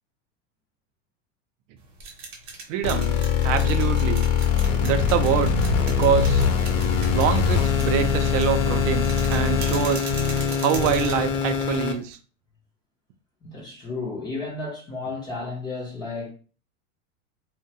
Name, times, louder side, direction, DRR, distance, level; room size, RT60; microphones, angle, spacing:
sound 1, 1.8-12.1, right 4 dB, 35° right, 0.7 m, -40 dB
voice 1, 2.7-3.1 3.4-4.3 4.8-5.6 5.9-6.5 7.1-10.1 10.6-12.2, right 9 dB, 70° right, 0.5 m, -25 dB
sound 2, 2.8-11.9, left 6 dB, 80° left, 0.7 m, -22 dB
voice 2, 13.4-16.3, left 3 dB, 10° left, 0.4 m, -33 dB
2.3 x 2.1 x 2.7 m
supercardioid pair, 150°, 38 cm